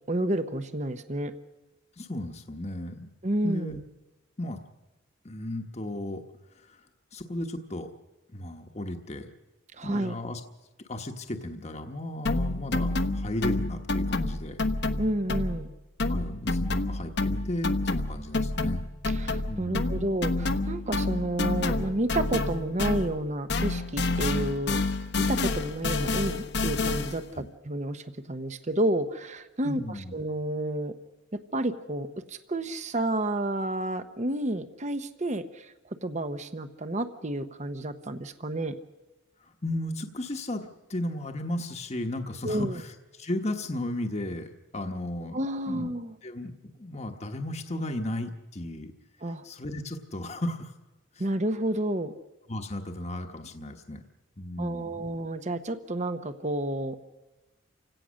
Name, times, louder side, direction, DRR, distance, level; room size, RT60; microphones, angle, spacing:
voice 1, 0.1-1.3 3.2-3.7 9.7-10.1 15.0-15.7 19.1-24.8 25.2-30.9 31.3-35.7 36.0-38.7 42.4-42.8 45.3-46.1 49.2-49.4 51.2-52.1 54.6-57.0, right 1 dB, 35° right, 10 dB, 0.9 m, -30 dB
voice 2, 2.0-3.1 3.4-3.8 4.4-4.6 5.2-6.2 6.5-6.9 7.1-7.9 8.3-9.3 9.8-10.4 10.9-14.6 16.1-18.9 19.5-20.0 27.3-27.5 29.6-30.1 39.4-45.4 45.7-45.9 46.2-48.9 49.3-50.7 51.1-51.2 52.5-54.0 54.4-55.1, left 1 dB, 35° left, 5 dB, 1.2 m, -35 dB
sound 1, 12.3-15.7 16.0-23.2 23.5-27.3, left 2 dB, 55° left, 0.9 m, -28 dB
29.0 x 17.0 x 6.4 m, 1.1 s
head